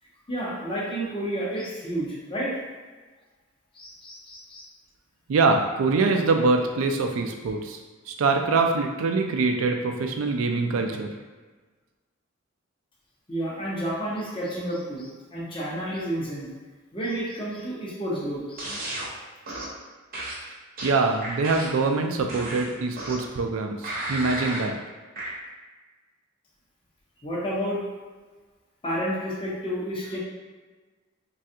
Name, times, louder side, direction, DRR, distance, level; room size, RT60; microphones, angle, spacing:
voice 1, 0.3-2.6 3.7-4.6 13.3-16.5 16.9-19.1 27.2-27.8 28.8-30.2, equal, 25° left, -6 dB, 0.8 m, -31 dB
voice 2, 5.3-7.8 8.1-11.1 20.8-24.8, right 3 dB, 70° right, 4 dB, 0.4 m, -24 dB
sound 1, 18.6-19.1 19.5-19.8 20.1-21.9 22.3-23.4 23.8-24.7 25.2-25.3, right 1 dB, 45° right, 0.7 m, -34 dB
3.3 x 2.3 x 2.7 m, 1.3 s
head